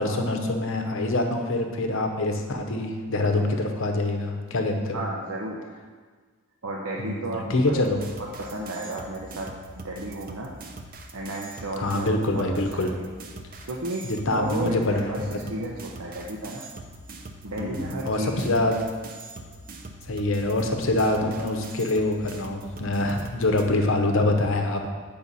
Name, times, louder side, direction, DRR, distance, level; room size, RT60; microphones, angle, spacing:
voice 1, 0.0-5.0 7.0-8.0 11.8-12.9 14.0-15.4 17.6-18.8 20.1-24.9, left 2 dB, 65° left, 4 dB, 0.9 m, -25 dB
voice 2, 4.9-5.6 6.6-7.9 8.4-10.6 11.1-12.1 12.3-13.0 13.6-14.0 14.3-16.6 17.4-18.6, right 1 dB, 80° right, -3 dB, 0.8 m, -33 dB
sound 1, 7.7-23.6, right 2 dB, 40° right, 0.7 m, -43 dB
8.8 x 5.6 x 4.2 m, 1.5 s
head